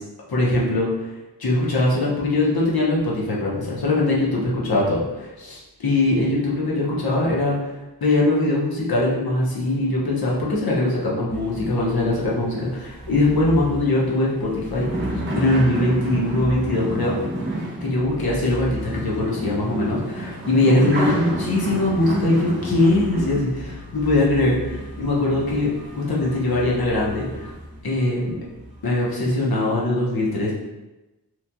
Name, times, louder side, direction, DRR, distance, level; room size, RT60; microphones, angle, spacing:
voice 1, 0.3-0.9 1.4-7.5 8.0-17.1 17.8-25.7 25.9-27.5 27.8-28.4 28.8-30.5, left 2 dB, 65° left, -5 dB, 0.9 m, -21 dB
sound 1, 11.3-28.0 28.5-29.1, right 1 dB, 30° right, 0.9 m, -31 dB
3.0 x 2.5 x 2.2 m, 1.0 s
cardioid pair, 45°, 39 cm